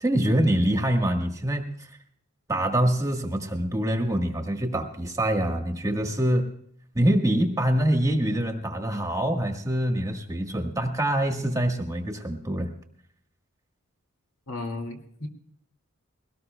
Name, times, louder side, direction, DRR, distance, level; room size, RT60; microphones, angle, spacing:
voice 1, 0.0-1.7 2.5-6.5 6.9-12.7, right 1 dB, 15° right, 4 dB, 1.3 m, -25 dB
voice 2, 14.5-15.3, left 2 dB, 65° left, 4 dB, 2.2 m, -34 dB
21.5 x 18.0 x 2.2 m, 0.67 s
head